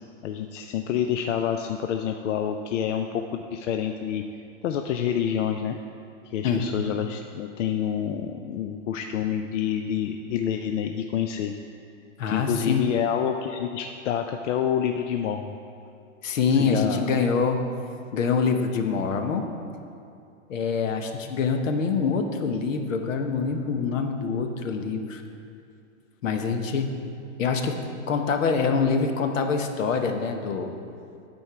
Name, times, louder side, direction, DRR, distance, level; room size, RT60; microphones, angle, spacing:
voice 1, 0.2-4.2 4.6-5.8 6.3-11.5 12.3-15.6 16.5-17.1, left 9 dB, 70° left, 5 dB, 0.5 m, -28 dB
voice 2, 12.2-12.8 16.2-17.6 18.1-19.4 20.5-25.2 26.2-26.9 27.4-27.8 28.1-30.7, left 5 dB, 85° left, 5 dB, 1.0 m, -25 dB
11.5 x 4.5 x 4.6 m, 2.5 s
supercardioid pair, 175°, 38 cm